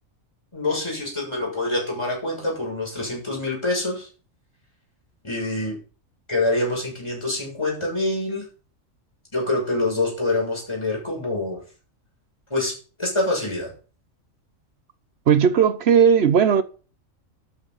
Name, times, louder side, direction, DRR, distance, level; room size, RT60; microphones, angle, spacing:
voice 1, 0.5-4.1 5.2-5.8 6.3-8.5 9.3-11.6 12.5-13.7, left 2 dB, 20° left, 7.0 m, -26 dB
voice 2, 15.3-16.6, right 7 dB, 55° right, 0.9 m, -16 dB
12.5 x 9.4 x 4.0 m
omnidirectional pair, 1.4 m